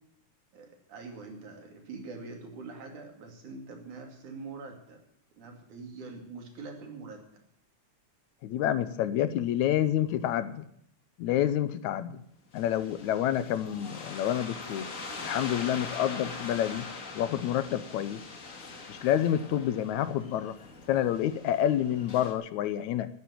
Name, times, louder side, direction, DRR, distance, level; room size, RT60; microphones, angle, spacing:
voice 1, 0.5-5.0 5.4-7.4, right 3 dB, 75° right, 2 dB, 4.1 m, -44 dB
voice 2, 8.4-10.7 11.2-12.2 12.5-14.9 15.2-16.9 17.1-18.2 18.9-20.5 20.9-23.1, left 11 dB, 75° left, 13 dB, 2.1 m, -28 dB
sound 1, 12.6-22.3, left 3 dB, 35° left, 1.5 m, -42 dB
12.0 x 9.6 x 8.6 m, 0.71 s
omnidirectional pair, 3.5 m